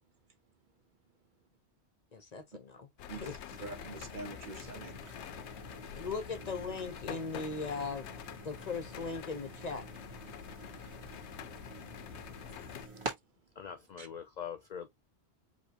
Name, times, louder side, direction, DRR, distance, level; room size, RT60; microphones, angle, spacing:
voice 1, 2.1-3.6 5.9-8.1 8.4-9.9, left 4 dB, 40° left, 0.9 m, -39 dB
sound 1, 3.0-12.9, left 10 dB, 80° left, 0.9 m, -46 dB
voice 2, 3.1-5.0 14.0-14.1, right 3 dB, 50° right, 0.8 m, -45 dB
sound 2, 3.5-13.1, right 3 dB, 25° right, 1.5 m, -48 dB
voice 3, 13.6-14.9, left 8 dB, 55° left, 0.5 m, -43 dB
4.9 x 2.9 x 2.8 m
omnidirectional pair, 1.1 m